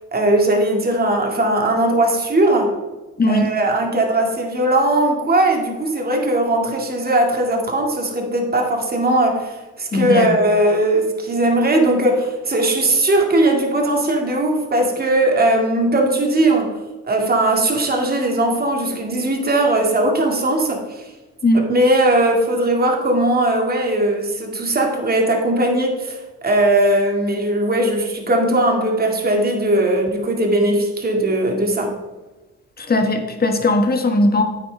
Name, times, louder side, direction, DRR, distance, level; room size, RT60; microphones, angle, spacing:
voice 1, 0.1-2.7 3.3-16.8 17.1-21.1 21.7-32.0, right 1 dB, 30° right, 1 dB, 2.1 m, -19 dB
voice 2, 3.2-3.5 9.9-10.3 21.4-21.6 32.8-34.4, left 2 dB, 30° left, 5 dB, 1.4 m, -18 dB
9.1 x 9.0 x 3.4 m, 1.2 s
cardioid pair, 90°, 30 cm